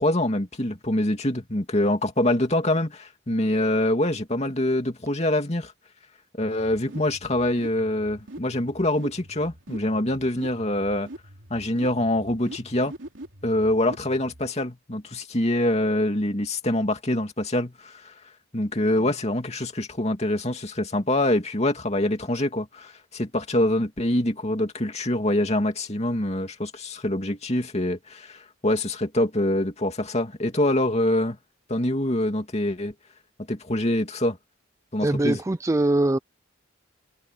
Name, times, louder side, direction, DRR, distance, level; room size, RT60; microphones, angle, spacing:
voice 1, 0.0-5.7 6.4-11.1 11.5-12.9 13.4-18.1 18.5-31.4 31.7-32.9 33.5-34.4 34.9-35.4, left 1 dB, 35° left, 2.6 m, -25 dB
sound 1, 6.4-14.5, right 1 dB, 75° right, 3.0 m, -44 dB
voice 2, 35.0-36.2, right 2 dB, 15° right, 0.4 m, -22 dB
head